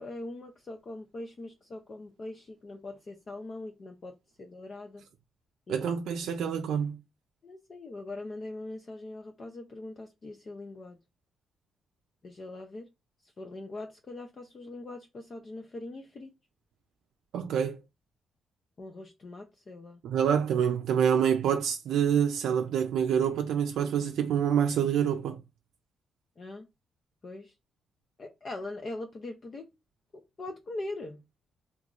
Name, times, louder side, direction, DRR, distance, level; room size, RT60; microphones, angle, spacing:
voice 1, 0.0-5.0 5.7-5.8 7.4-11.0 12.2-12.9 13.4-16.3 18.8-20.0 26.4-26.7 27.2-27.5 28.2-29.7 30.4-31.2, left 2 dB, 30° left, 0.4 m, -41 dB
voice 2, 5.7-7.0 17.3-17.8 20.0-25.4, right 8 dB, 80° right, 0.4 m, -26 dB
2.9 x 2.3 x 3.7 m
cardioid pair, 160°, 0 cm